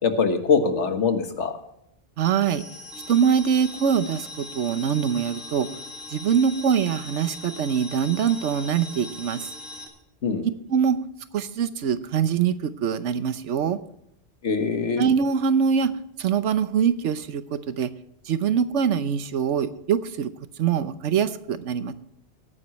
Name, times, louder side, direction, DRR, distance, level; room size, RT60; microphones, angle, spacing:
voice 1, 0.0-1.6 10.2-10.4 14.4-15.1, left 5 dB, 80° left, 7 dB, 1.6 m, -23 dB
voice 2, 2.2-2.6 3.1-5.7 6.1-9.5 10.7-11.0 11.3-13.8 15.0-15.9 16.2-17.9 18.3-20.3 20.6-21.9, right 7 dB, 85° right, 13 dB, 1.1 m, -23 dB
sound 1, 2.4-9.9, left 2 dB, ahead, 2.7 m, -40 dB
17.5 x 9.6 x 3.1 m, 0.78 s
omnidirectional pair, 1.2 m